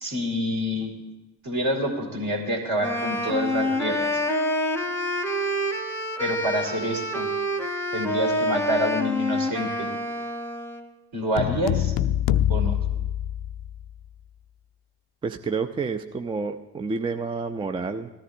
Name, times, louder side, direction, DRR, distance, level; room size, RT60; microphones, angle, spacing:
voice 1, 0.0-0.9 1.4-4.2 6.2-7.3 7.9-9.9 11.1-11.9 12.5-12.8, equal, 50° right, 1 dB, 2.6 m, -27 dB
Wind instrument woodwind instrument, 2.8-10.9, equal, 5° left, 1.0 m, -27 dB
sound 1, 11.4-13.9, left 12 dB, 50° left, 0.4 m, -24 dB
voice 2, 15.2-18.1, right 4 dB, 10° right, 7 dB, 0.4 m, -29 dB
18.5 x 13.5 x 2.6 m, 1.1 s
figure-of-eight pair, 45°, 46 cm